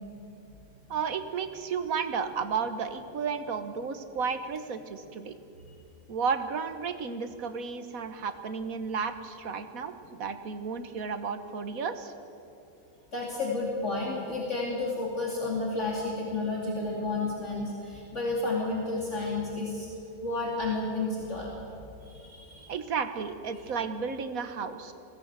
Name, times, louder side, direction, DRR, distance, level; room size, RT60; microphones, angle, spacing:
voice 1, 0.9-5.4 6.1-12.1 22.7-24.9, right 5 dB, 70° right, 10 dB, 1.6 m, -33 dB
voice 2, 13.1-19.9 20.2-21.5 22.0-22.7, left 3 dB, 55° left, -3 dB, 3.1 m, -31 dB
20.0 x 16.5 x 8.2 m, 2.8 s
omnidirectional pair, 1.5 m